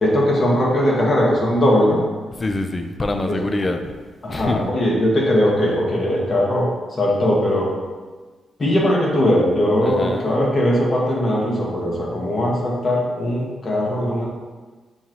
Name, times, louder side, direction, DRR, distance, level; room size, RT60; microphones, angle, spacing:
voice 1, 0.0-2.0 3.3-3.4 4.2-7.7 8.6-14.2, left 1 dB, 50° left, -3 dB, 1.3 m, -19 dB
voice 2, 2.4-3.8 4.3-4.7 9.8-10.3, left 2 dB, 35° left, 6 dB, 0.5 m, -24 dB
7.0 x 2.4 x 3.0 m, 1.3 s
supercardioid pair, 50°, 0 cm